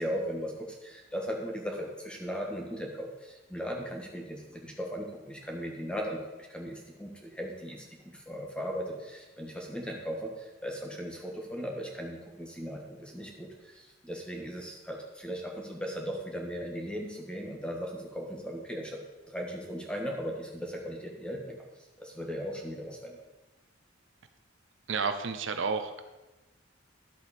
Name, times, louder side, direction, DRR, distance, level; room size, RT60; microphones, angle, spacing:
voice 1, 0.0-6.2 6.5-7.8 8.1-19.0 19.3-21.6 22.0-23.1, equal, 5° left, 0 dB, 1.5 m, -37 dB
voice 2, 24.9-26.0, right 5 dB, 70° right, 8 dB, 0.7 m, -31 dB
11.0 x 7.9 x 4.2 m, 1.1 s
head